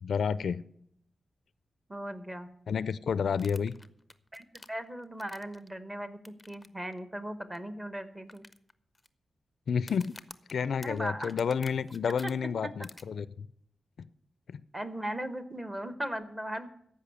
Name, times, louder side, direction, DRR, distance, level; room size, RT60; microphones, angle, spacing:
voice 1, 0.0-0.6 2.7-3.7 9.7-10.2 10.5-13.5 14.0-14.1 14.5-14.6, left 6 dB, 70° left, 0.4 m, -30 dB
voice 2, 1.9-2.5 4.3-8.5 10.8-11.3 12.2-12.3 12.6-12.7 14.7-16.7, right 1 dB, 15° right, 1.0 m, -38 dB
sound 1, 3.3-5.7 6.2-6.7 6.9-7.0 7.5-7.6 8.3-9.1 9.8-12.3 12.8-13.0, left 2 dB, 15° left, 0.6 m, -50 dB
14.0 x 5.6 x 8.2 m
wide cardioid pair, 125°, 0 cm